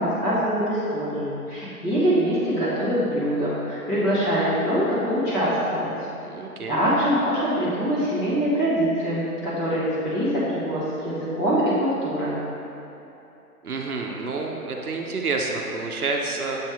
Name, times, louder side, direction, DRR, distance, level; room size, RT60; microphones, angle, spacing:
voice 1, 0.0-5.9 6.7-12.4, equal, 15° left, -11 dB, 1.3 m, -24 dB
voice 2, 6.2-6.8 13.6-16.6, right 3 dB, 70° right, 1 dB, 0.8 m, -28 dB
7.3 x 4.2 x 3.5 m, 2.9 s
figure-of-eight pair, 135°, 45 cm